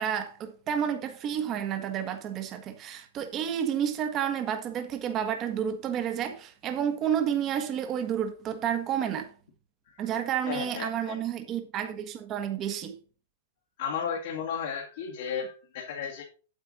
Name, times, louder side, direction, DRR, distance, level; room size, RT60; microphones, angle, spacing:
voice 1, 0.0-9.3 10.0-13.0, right 9 dB, 35° right, 1.3 m, -30 dB
voice 2, 10.5-11.2 13.8-16.2, left 7 dB, 65° left, 2.1 m, -34 dB
8.6 x 8.1 x 4.0 m
hypercardioid pair, 125°, 0 cm